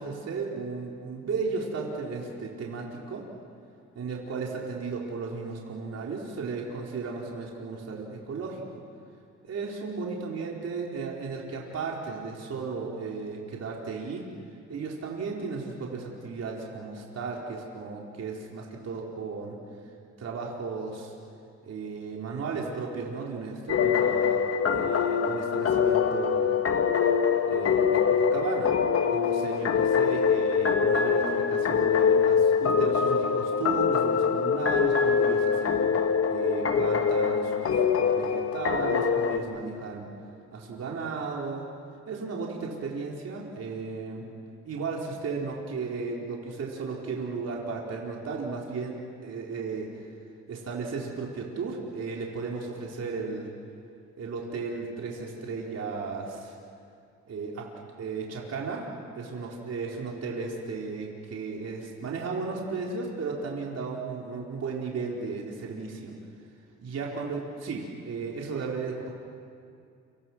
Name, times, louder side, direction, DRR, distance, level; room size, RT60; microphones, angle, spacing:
voice 1, 0.0-3.3 4.0-8.8 9.4-14.2 14.7-19.6 20.2-21.1 21.6-24.4 24.7-26.6 27.4-28.7 29.1-35.7 36.3-40.1 40.5-41.7 42.1-44.3 44.6-49.9 50.5-53.5 54.2-56.5 57.3-57.7 58.0-58.8 59.1-66.1 66.8-69.2, right 4 dB, 55° right, -2 dB, 4.4 m, -35 dB
sound 1, 23.7-39.4, left 6 dB, 50° left, 1.7 m, -24 dB
30.0 x 27.0 x 6.2 m, 2.4 s
cardioid pair, 90°, 30 cm